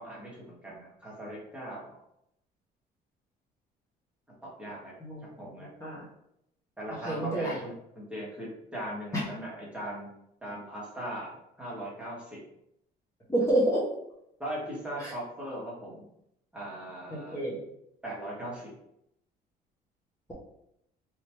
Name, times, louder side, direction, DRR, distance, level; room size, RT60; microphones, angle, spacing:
voice 1, 0.0-1.9 4.6-4.9 5.4-5.7 6.8-10.1 10.4-12.4 14.4-16.0 16.5-17.4 18.0-18.7, right 1 dB, 5° right, -6 dB, 1.4 m, -39 dB
voice 2, 7.0-7.6 13.3-13.8 15.0-15.1 17.1-17.6, right 1 dB, 15° left, -8 dB, 1.1 m, -28 dB
3.4 x 2.9 x 3.0 m, 0.77 s
cardioid pair, 110°, 17 cm